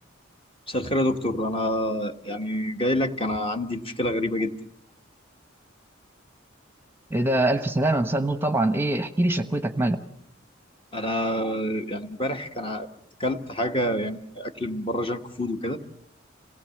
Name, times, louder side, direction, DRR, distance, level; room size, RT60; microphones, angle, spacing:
voice 1, 0.7-4.5 10.9-12.9 13.2-15.8, left 1 dB, 25° left, 6 dB, 1.4 m, -27 dB
voice 2, 7.1-10.0, right 1 dB, 10° right, 9 dB, 1.0 m, -23 dB
27.5 x 19.0 x 7.8 m, 0.72 s
head